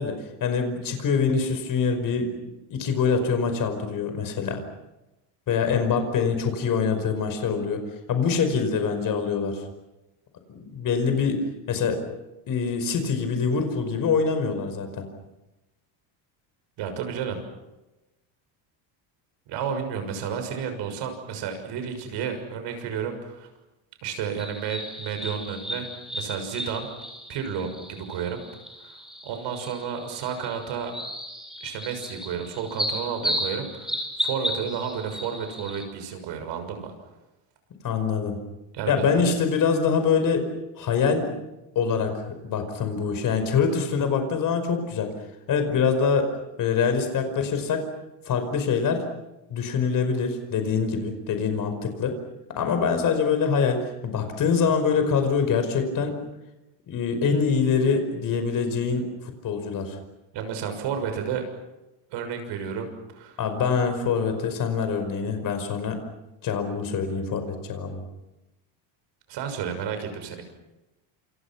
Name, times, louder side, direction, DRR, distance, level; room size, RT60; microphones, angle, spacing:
voice 1, 0.0-4.6 5.5-7.8 8.1-9.6 10.5-11.4 11.7-12.0 12.5-15.1 37.8-38.4 38.9-40.4 40.8-41.3 41.8-45.1 45.5-46.3 46.6-47.8 48.3-49.0 49.5-52.2 52.6-56.1 56.9-60.0 63.4-66.0 66.4-68.0, left 5 dB, 40° left, 7 dB, 5.3 m, -24 dB
voice 2, 16.8-17.4 19.5-23.5 24.0-25.9 26.1-26.9 27.3-28.4 28.8-30.9 31.6-36.9 38.7-39.0 60.3-61.4 62.1-63.4 69.3-70.4, right 7 dB, 60° right, 7 dB, 6.6 m, -31 dB
sound 1, 24.4-35.9, equal, ahead, 5.0 m, -34 dB
28.5 x 28.0 x 6.1 m, 0.99 s
cardioid pair, 160°, 48 cm